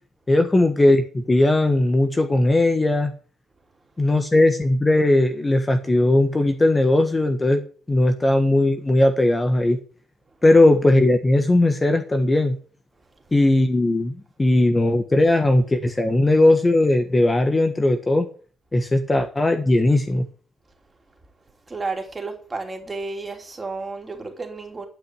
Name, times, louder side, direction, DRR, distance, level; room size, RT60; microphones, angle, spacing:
voice 1, 0.3-3.1 4.0-7.6 7.9-9.8 10.4-12.6 13.3-18.3 18.7-20.2, left 1 dB, 20° left, 1.4 m, -18 dB
voice 2, 21.7-24.9, right 3 dB, 25° right, 3.1 m, -32 dB
11.5 x 5.9 x 7.9 m
cardioid pair, 90°, 0 cm